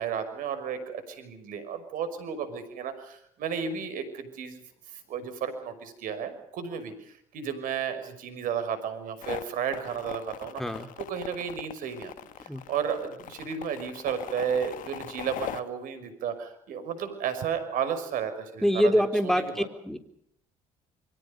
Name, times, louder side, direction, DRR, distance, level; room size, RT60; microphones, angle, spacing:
voice 1, 0.0-4.6 4.9-12.1 12.4-19.7, right 7 dB, 65° right, 11 dB, 5.8 m, -33 dB
sound 1, 9.2-15.6, left 11 dB, 65° left, 1.6 m, -40 dB
voice 2, 18.6-20.0, equal, ahead, 8 dB, 3.8 m, -25 dB
28.5 x 24.0 x 5.3 m, 0.70 s
hypercardioid pair, 65°, 15 cm